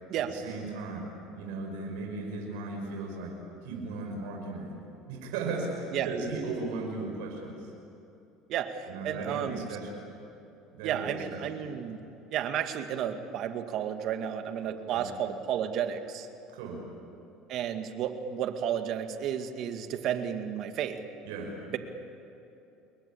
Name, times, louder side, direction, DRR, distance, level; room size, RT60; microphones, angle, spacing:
voice 1, 0.1-1.1 1.3-3.3 3.6-4.7 5.1-7.7 8.9-10.0 10.7-11.7 14.6-15.1 16.5-16.8 21.2-21.6, right 3 dB, 85° right, 0 dB, 6.0 m, -36 dB
voice 2, 8.5-9.7 10.8-12.0 12.3-16.3 17.5-21.0 21.7-21.8, right 9 dB, 60° right, 7 dB, 2.2 m, -32 dB
29.0 x 22.0 x 8.7 m, 2.9 s
supercardioid pair, 105°, 0 cm